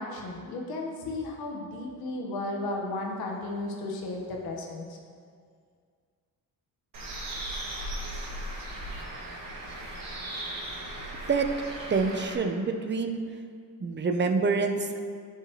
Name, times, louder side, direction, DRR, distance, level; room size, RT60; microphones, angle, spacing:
voice 1, 0.0-5.0, left 2 dB, 85° left, 0 dB, 1.4 m, -34 dB
Bird, 6.9-12.3, right 1 dB, 65° right, 2.0 m, -37 dB
voice 2, 11.9-13.2 13.8-15.0, right 4 dB, 30° right, 5 dB, 0.8 m, -26 dB
12.5 x 5.7 x 3.1 m, 2.1 s
cardioid pair, 75°, 36 cm